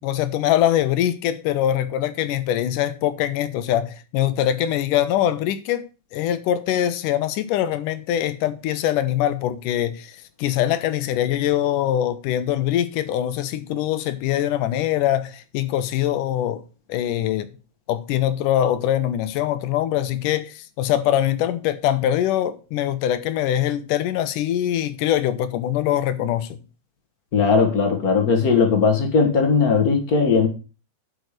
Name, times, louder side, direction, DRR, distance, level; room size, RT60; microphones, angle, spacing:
voice 1, 0.0-16.6 16.9-17.5 17.9-26.6, left 11 dB, 75° left, 2.1 m, -23 dB
voice 2, 27.3-30.5, left 5 dB, 55° left, 0.9 m, -18 dB
11.0 x 5.2 x 6.5 m
omnidirectional pair, 4.2 m